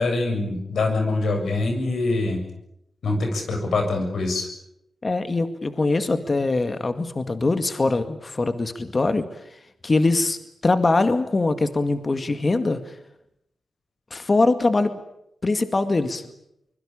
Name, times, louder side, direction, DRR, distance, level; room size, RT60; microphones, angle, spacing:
voice 1, 0.0-2.4 3.0-4.5, left 3 dB, 75° left, 4 dB, 7.3 m, -24 dB
voice 2, 5.0-10.4 10.6-13.0 14.1-15.0 15.4-16.3, left 3 dB, 40° left, 9 dB, 2.1 m, -22 dB
24.5 x 22.5 x 8.8 m, 0.79 s
cardioid pair, 65°, 0 cm